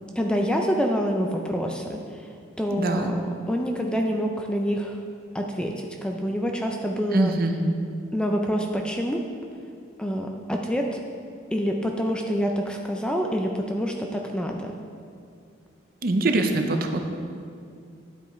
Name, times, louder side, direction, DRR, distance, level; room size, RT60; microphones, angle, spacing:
voice 1, 0.2-2.3 2.6-5.0 5.3-7.4 8.1-9.2 10.0-11.0 11.5-14.7, equal, 5° left, 2 dB, 0.4 m, -27 dB
voice 2, 2.8-3.1 7.1-7.6 16.0-17.1, right 2 dB, 45° right, 5 dB, 0.6 m, -23 dB
10.0 x 8.1 x 3.1 m, 2.3 s
head